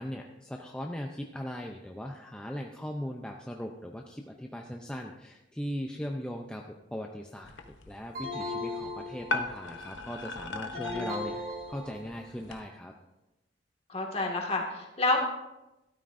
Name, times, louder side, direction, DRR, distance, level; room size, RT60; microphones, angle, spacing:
voice 1, 0.0-7.5 7.8-11.4 11.7-12.9, equal, 5° left, 2 dB, 0.5 m, -39 dB
sound 1, 7.4-12.6, left 2 dB, 80° left, 0.8 m, -39 dB
sound 2, 8.1-9.7 10.7-12.3, left 2 dB, 50° right, 2.4 m, -37 dB
voice 2, 10.7-11.1 13.9-15.2, left 2 dB, 35° left, 0 dB, 1.9 m, -29 dB
12.5 x 12.5 x 2.6 m, 0.95 s
head